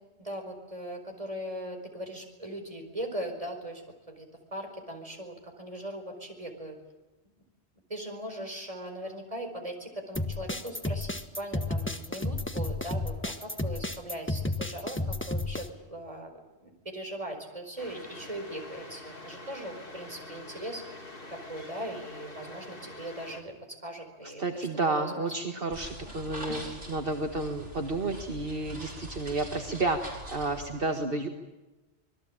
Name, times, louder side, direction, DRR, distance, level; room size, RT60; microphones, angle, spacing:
voice 1, 0.2-6.7 7.9-25.2 26.5-26.6 28.6-28.8, right 1 dB, 30° right, 4 dB, 4.9 m, -40 dB
sound 1, 10.1-15.7, left 2 dB, 10° left, 1.5 m, -32 dB
sound 2, 17.8-23.4, left 2 dB, 50° left, 3.2 m, -45 dB
voice 2, 24.2-31.3, right 2 dB, 55° right, 5 dB, 1.9 m, -31 dB
sound 3, 25.7-30.7, equal, 90° right, 6.3 m, -43 dB
27.0 x 21.0 x 8.9 m, 1.1 s
omnidirectional pair, 1.2 m